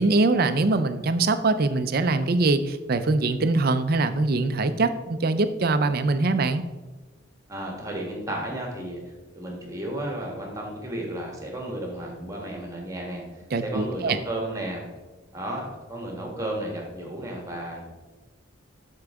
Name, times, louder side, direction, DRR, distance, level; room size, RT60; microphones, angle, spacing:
voice 1, 0.0-6.6 13.5-14.2, right 3 dB, 50° right, 11 dB, 0.5 m, -23 dB
voice 2, 7.5-13.2 13.6-14.8 15.3-17.8, right 1 dB, 15° right, 0 dB, 1.5 m, -33 dB
12.0 x 4.6 x 3.6 m, 1.2 s
head